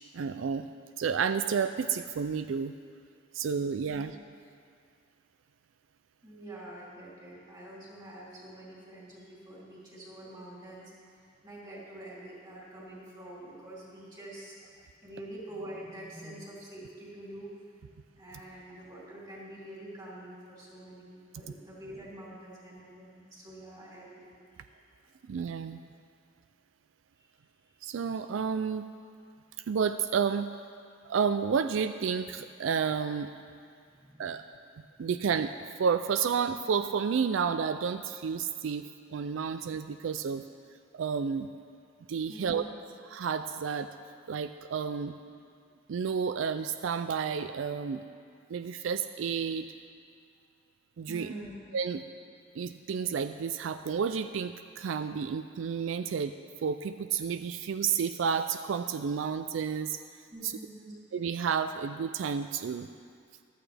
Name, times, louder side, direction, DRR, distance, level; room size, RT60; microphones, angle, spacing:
voice 1, 0.1-0.7 1.0-2.7 3.3-4.1 25.3-25.8 27.8-28.8 29.7-30.5 31.0-33.3 34.2-34.4 35.0-40.4 40.9-41.5 42.1-42.6 43.1-43.9 44.3-45.2 45.9-48.0 48.5-49.7 51.0-51.3 51.7-52.0 52.5-56.3 56.6-60.0 60.4-60.6 61.1-62.9, right 6 dB, 90° right, 10 dB, 0.4 m, -31 dB
voice 2, 6.2-10.9 11.4-14.6 15.0-17.5 18.2-24.7 33.9-34.3 42.3-42.6 51.1-51.6 60.3-61.0, right 1 dB, 25° right, -6 dB, 3.2 m, -46 dB
14.5 x 12.0 x 3.4 m, 2.2 s
head